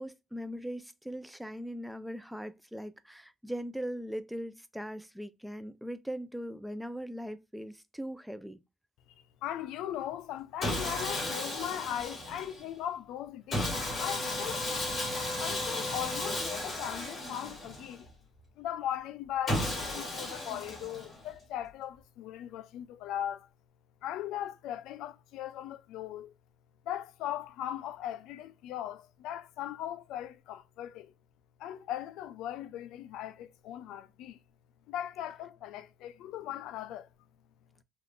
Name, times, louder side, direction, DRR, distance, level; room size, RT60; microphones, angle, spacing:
voice 1, 0.0-8.6, equal, 5° right, 0.3 m, -40 dB
voice 2, 9.4-14.7 15.4-18.1 18.6-23.5 24.0-26.3 26.9-31.1 31.6-34.4 34.9-37.1, left 11 dB, 85° left, 0.3 m, -39 dB
Sawing, 10.6-12.7 13.5-18.0 19.5-21.3, left 1 dB, 30° left, 1.9 m, -34 dB
3.5 x 2.4 x 2.4 m
cardioid pair, 130°, 0 cm